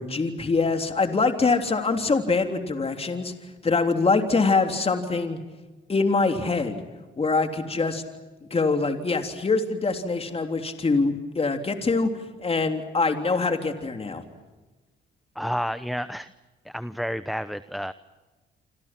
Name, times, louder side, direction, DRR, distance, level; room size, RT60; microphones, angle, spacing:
voice 1, 0.0-3.3 3.6-5.4 5.9-6.8 7.2-8.0 8.5-12.1 12.4-14.2, left 4 dB, 30° left, 5 dB, 3.4 m, -24 dB
voice 2, 15.4-16.3 16.6-17.9, equal, ahead, 12 dB, 0.9 m, -30 dB
29.0 x 26.5 x 6.0 m, 1.2 s
cardioid pair, 90°, 20 cm